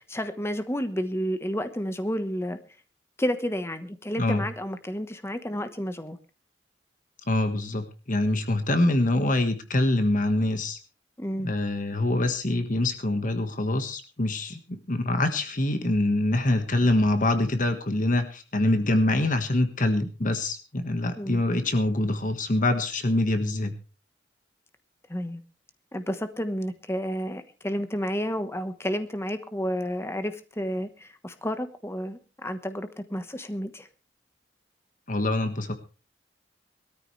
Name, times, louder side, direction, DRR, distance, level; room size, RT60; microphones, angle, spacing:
voice 1, 0.1-2.6 3.2-6.2 11.2-11.5 21.2-21.4 25.1-25.4 25.9-33.9, equal, 15° left, 9 dB, 1.2 m, -31 dB
voice 2, 7.3-10.8 11.4-23.8 35.1-35.8, left 1 dB, 45° left, 8 dB, 1.5 m, -25 dB
20.5 x 13.5 x 3.3 m, 0.34 s
head